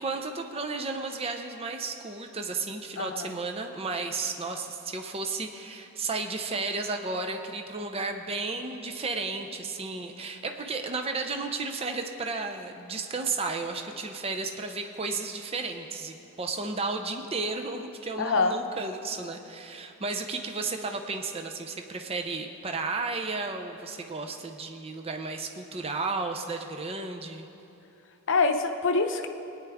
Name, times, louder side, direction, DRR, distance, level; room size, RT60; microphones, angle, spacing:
voice 1, 0.0-27.5, right 3 dB, 25° right, 5 dB, 0.5 m, -33 dB
voice 2, 3.0-3.3 18.2-18.6 28.3-29.3, left 3 dB, 55° left, 5 dB, 0.7 m, -25 dB
20.5 x 9.7 x 3.5 m, 2.9 s
head